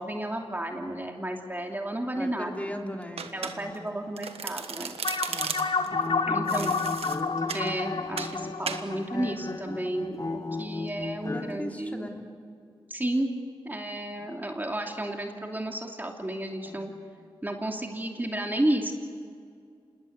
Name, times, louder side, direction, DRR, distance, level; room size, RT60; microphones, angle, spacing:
voice 1, 0.0-2.5 3.3-5.3 6.3-6.8 7.5-12.1 12.9-13.3 13.6-16.9 17.4-18.9, right 1 dB, 20° right, 2 dB, 2.8 m, -32 dB
voice 2, 2.1-3.8 5.3-6.9 8.1-8.5 11.3-12.3 14.1-14.3 16.6-16.9, left 1 dB, 15° left, 2 dB, 3.0 m, -40 dB
Domestic sounds home sounds, 3.2-3.9 4.2-5.9 6.5-7.7 8.2-8.4 8.7-8.9, right 6 dB, 80° right, 1.4 m, -35 dB
sound 1, 5.0-9.9, left 4 dB, 60° left, 1.4 m, -30 dB
sound 2, 5.8-11.6, left 3 dB, 35° left, 1.7 m, -35 dB
26.5 x 20.0 x 8.1 m, 2.3 s
cardioid pair, 50°, 10 cm